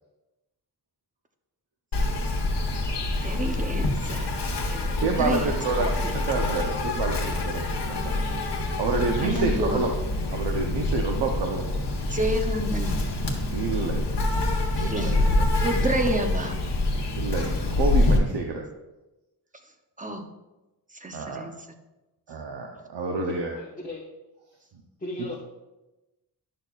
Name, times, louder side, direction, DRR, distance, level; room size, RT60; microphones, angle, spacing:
Insect, 1.9-18.2, left 2 dB, 75° left, 1.4 m, -26 dB
voice 1, 3.2-4.3 4.7-6.1 9.2-9.8 12.1-13.0 14.8-15.2 15.6-16.6 20.0-20.3 20.9-21.6, right 1 dB, 20° right, 5 dB, 0.7 m, -30 dB
voice 2, 5.0-9.9 10.3-11.6 13.5-14.0 14.7-15.4 17.1-18.6 21.1-21.5 22.3-23.6 25.2-25.3, right 3 dB, 85° right, 1 dB, 0.8 m, -29 dB
voice 3, 23.0-24.0 25.0-25.3, left 1 dB, 20° left, -5 dB, 1.1 m, -37 dB
11.0 x 6.4 x 2.4 m, 1.0 s
wide cardioid pair, 135°, 41 cm